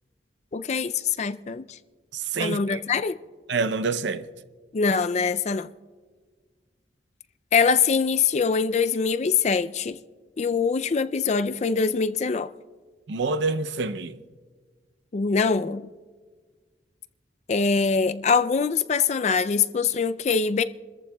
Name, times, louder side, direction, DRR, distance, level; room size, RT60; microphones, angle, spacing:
voice 1, 0.5-1.8 2.4-3.2 4.7-5.7 7.5-10.0 10.4-12.5 15.1-15.9 17.5-20.6, left 5 dB, 40° left, 0.4 m, -23 dB
voice 2, 2.1-2.8 3.5-4.3 13.1-14.2, right 4 dB, 80° right, 0.6 m, -27 dB
28.5 x 14.0 x 2.3 m
head